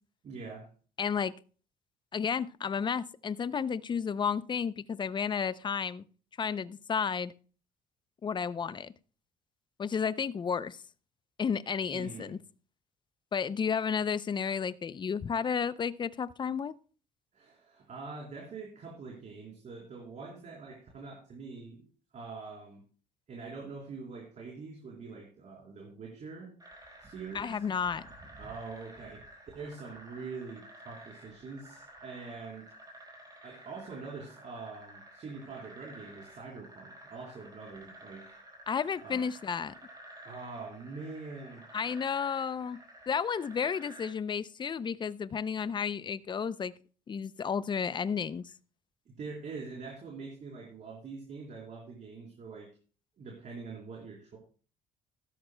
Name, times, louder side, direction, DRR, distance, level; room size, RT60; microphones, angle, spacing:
voice 1, 0.2-0.7 11.9-12.4 17.3-22.8 23.3-26.5 27.0-27.6 28.4-29.3 29.5-32.7 33.4-38.3 39.0-39.2 40.2-41.6 49.2-52.7 53.2-54.4, right 4 dB, 45° right, 3.7 m, -44 dB
voice 2, 1.0-1.3 2.1-6.0 6.4-7.3 8.2-8.9 9.8-10.8 11.4-12.4 13.3-16.7 27.3-28.1 38.7-39.8 41.7-46.7 47.1-48.4, left 6 dB, 25° left, 0.5 m, -32 dB
sound 1, 26.6-44.1, right 1 dB, 25° right, 4.2 m, -52 dB
16.0 x 13.0 x 2.2 m
cardioid pair, 110°, 17 cm